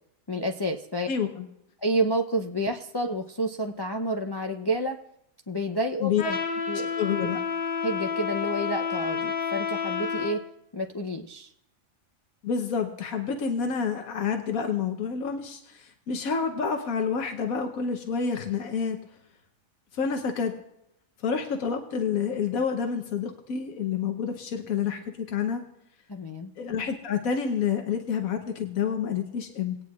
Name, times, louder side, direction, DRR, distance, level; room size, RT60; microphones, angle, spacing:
voice 1, 0.3-1.1 1.8-5.0 5.5-6.4 6.7-6.9 7.1-7.3 7.8-10.4 10.7-11.5 26.1-26.5, right 1 dB, 30° left, 3 dB, 0.4 m, -29 dB
voice 2, 1.1-1.4 6.0-6.2 7.0-7.4 12.4-19.0 19.9-20.5 21.2-25.6 26.6-29.8, left 6 dB, 90° left, 4 dB, 1.4 m, -28 dB
Trumpet, 6.2-10.4, left 6 dB, 60° left, 2.4 m, -30 dB
20.5 x 9.4 x 2.4 m, 0.78 s
omnidirectional pair, 1.4 m